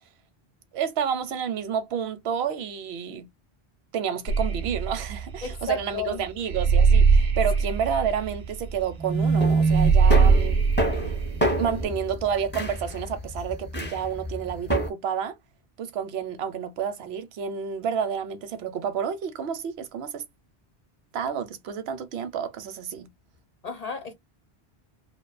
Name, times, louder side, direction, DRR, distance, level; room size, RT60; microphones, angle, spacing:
voice 1, 0.7-3.3 3.9-10.6 11.6-15.3 15.8-20.2 21.1-23.1, right 7 dB, 80° right, 0.8 m, -30 dB
sound 1, 4.3-11.8, right 5 dB, 55° right, 0.5 m, -21 dB
voice 2, 5.4-6.2 23.6-24.1, left 6 dB, 45° left, 0.7 m, -33 dB
sound 2, 9.0-14.9, right 2 dB, 15° left, 0.5 m, -26 dB
2.4 x 2.3 x 2.4 m
omnidirectional pair, 1.1 m